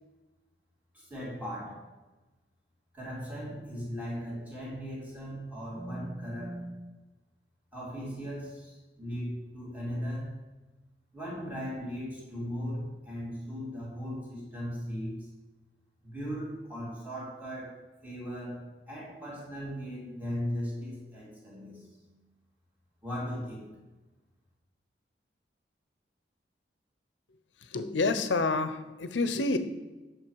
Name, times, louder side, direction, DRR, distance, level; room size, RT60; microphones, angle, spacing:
voice 1, 0.9-1.9 2.9-6.8 7.7-10.4 11.1-15.3 16.0-22.0 23.0-23.8, equal, 10° right, -5 dB, 2.4 m, -38 dB
voice 2, 27.6-29.6, left 3 dB, 85° left, 10 dB, 0.7 m, -28 dB
9.0 x 6.6 x 4.7 m, 1.1 s
head